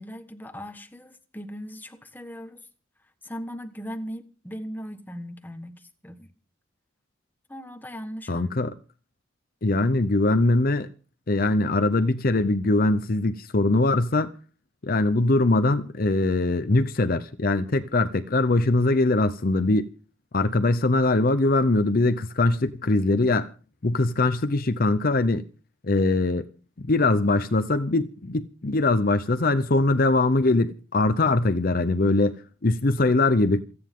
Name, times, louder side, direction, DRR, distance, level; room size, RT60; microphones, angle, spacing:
voice 1, 0.0-2.7 3.2-6.3 7.5-8.5, equal, 10° left, 1.3 m, -38 dB
voice 2, 8.3-8.7 9.6-10.9 11.3-14.3 14.8-19.9 20.3-23.5 23.8-25.5 25.8-26.5 26.9-33.6, left 2 dB, 45° left, 0.7 m, -22 dB
28.5 x 9.7 x 3.7 m
head